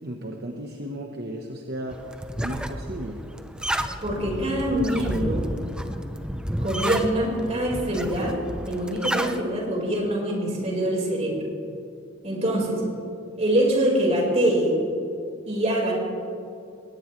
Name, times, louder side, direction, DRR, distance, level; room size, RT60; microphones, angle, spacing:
voice 1, 0.0-2.0 2.4-3.2, right 1 dB, 55° right, 1 dB, 1.2 m, -34 dB
sound 1, 1.9-9.4, equal, 5° right, 0.7 m, -31 dB
voice 2, 4.0-5.5 6.0-6.1 6.5-8.3 8.7-11.4 12.2-12.8 13.4-14.8 15.4-15.9, right 1 dB, 35° right, -2 dB, 4.7 m, -24 dB
21.5 x 19.0 x 3.2 m, 2.7 s
head